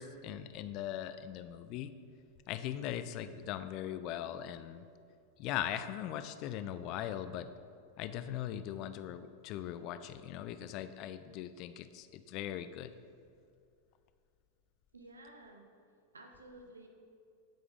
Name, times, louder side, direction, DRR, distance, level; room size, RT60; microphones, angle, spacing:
voice 1, 0.0-1.9 2.5-4.8 5.4-7.5 8.0-12.9, left 11 dB, 40° left, 11 dB, 0.3 m, -40 dB
voice 2, 14.9-15.6 16.1-16.9, right 2 dB, 75° right, 3 dB, 0.8 m, -53 dB
7.7 x 5.3 x 3.5 m, 2.4 s
figure-of-eight pair, 90°, 0 cm